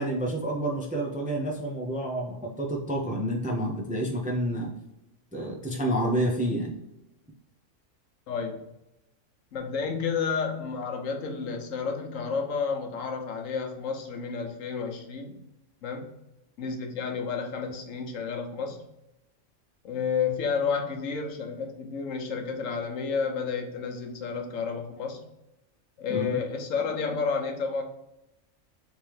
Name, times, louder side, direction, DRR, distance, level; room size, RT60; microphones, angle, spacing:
voice 1, 0.0-4.7 5.3-6.7 26.1-26.4, right 1 dB, 10° right, 0 dB, 0.4 m, -29 dB
voice 2, 8.3-8.6 9.5-15.4 15.8-16.1 16.6-18.8 19.8-25.2 26.0-27.8, left 5 dB, 80° left, 4 dB, 1.2 m, -31 dB
3.6 x 3.1 x 4.7 m, 0.89 s
omnidirectional pair, 1.3 m